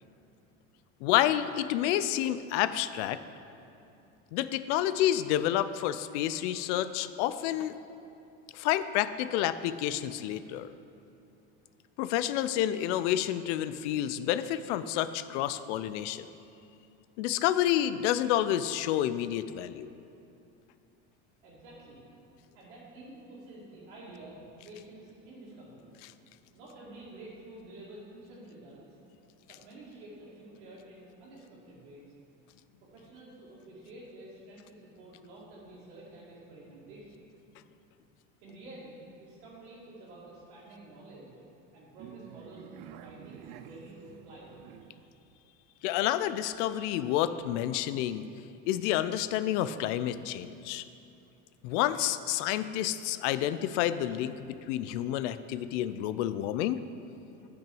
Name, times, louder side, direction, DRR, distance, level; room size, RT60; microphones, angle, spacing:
voice 1, 1.0-3.2 4.3-7.7 8.5-10.7 12.0-16.3 17.2-19.9 45.8-48.3 48.7-50.8 51.6-56.8, left 12 dB, 80° left, 13 dB, 0.5 m, -29 dB
voice 2, 21.4-22.0 22.5-25.9 26.5-29.0 29.5-32.1 32.8-37.3 38.4-41.4 41.7-44.6 52.4-52.5, right 1 dB, 85° right, -9 dB, 2.3 m, -49 dB
sound 1, 42.0-45.1, right 10 dB, 60° right, 0.5 m, -49 dB
8.8 x 6.0 x 5.4 m, 2.7 s
supercardioid pair, 125°, 35 cm